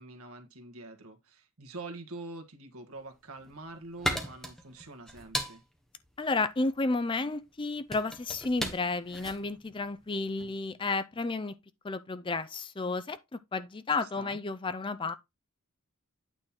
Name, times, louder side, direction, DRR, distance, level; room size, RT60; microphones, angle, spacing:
voice 1, 0.0-5.6 14.0-14.4, right 2 dB, 80° right, 1.5 m, -45 dB
sound 1, 3.2-10.6, equal, ahead, 1.1 m, -38 dB
voice 2, 6.2-11.6 11.8-15.2, left 3 dB, 20° left, 0.4 m, -32 dB
9.0 x 3.7 x 4.3 m
head